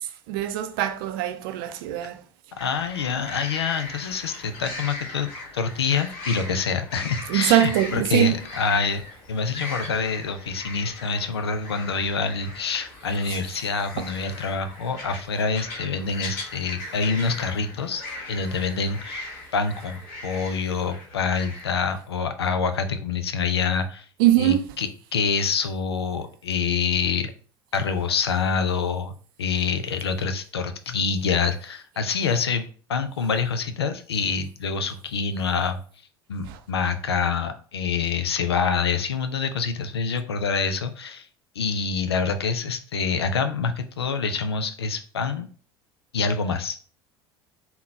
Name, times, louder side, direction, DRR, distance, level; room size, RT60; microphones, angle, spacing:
voice 1, 0.3-2.2 7.3-8.4 13.3-13.4 24.2-24.6 36.5-36.6, right 12 dB, 65° right, 0.5 m, -22 dB
voice 2, 2.6-9.0 9.3-18.0 18.3-24.1 24.4-27.3 27.7-29.1 29.4-35.8 36.3-41.3 41.6-45.5 46.1-46.8, left 5 dB, 85° left, 0.4 m, -26 dB
sound 1, 2.6-22.0, left 2 dB, 60° left, 1.7 m, -39 dB
3.8 x 2.2 x 3.9 m
figure-of-eight pair, 70°, 13 cm